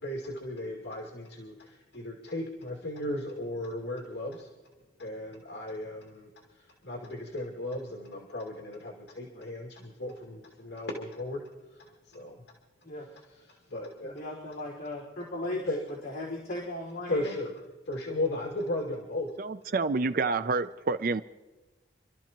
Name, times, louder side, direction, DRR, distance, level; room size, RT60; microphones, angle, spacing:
voice 1, 0.0-4.5 5.0-12.4 13.5-14.3 15.7-15.8 17.1-17.5 17.8-19.3, left 1 dB, 70° left, -1 dB, 2.3 m, -36 dB
voice 2, 14.0-15.7 16.0-17.4, left 1 dB, 50° left, -8 dB, 4.0 m, -37 dB
voice 3, 19.4-21.2, right 4 dB, 45° right, 12 dB, 0.4 m, -28 dB
28.0 x 13.0 x 3.0 m, 1.2 s
head